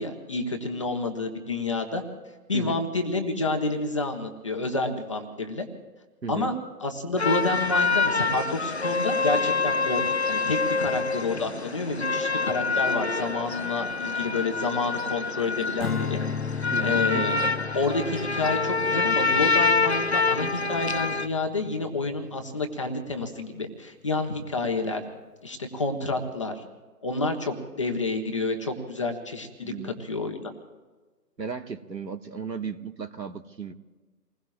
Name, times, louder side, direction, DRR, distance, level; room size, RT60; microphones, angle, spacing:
voice 1, 0.0-2.0 2.5-5.7 6.3-6.6 6.8-10.0 10.3-16.2 16.8-17.4 17.7-25.0 25.4-26.6 27.0-30.5, left 3 dB, 20° left, 3 dB, 1.0 m, -29 dB
sound 1, 7.2-21.3, left 4 dB, 45° left, 0.5 m, -26 dB
Strum, 15.8-22.2, left 6 dB, 65° left, 1.0 m, -35 dB
voice 2, 16.7-17.3 29.6-29.9 31.4-33.7, right 5 dB, 85° right, 7 dB, 1.7 m, -35 dB
29.0 x 20.5 x 2.4 m, 1.3 s
figure-of-eight pair, 155°, 49 cm